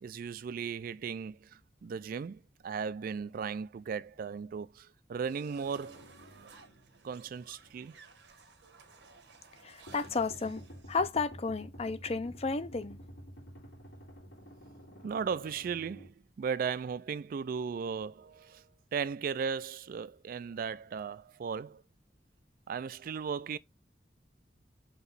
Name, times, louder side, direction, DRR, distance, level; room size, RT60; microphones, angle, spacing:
voice 1, 0.0-6.1 7.0-8.0 15.0-18.6 18.9-21.8 22.7-23.6, right 6 dB, 55° right, 0.3 m, -36 dB
sound 1, 5.3-11.0, right 5 dB, 85° right, 1.2 m, -57 dB
sound 2, 5.6-7.9 8.2-8.3 9.9-16.1, equal, 90° left, 2.6 m, -51 dB
voice 2, 9.6-10.6 10.9-13.0, left 4 dB, 35° left, 0.6 m, -32 dB
5.9 x 3.0 x 5.3 m
head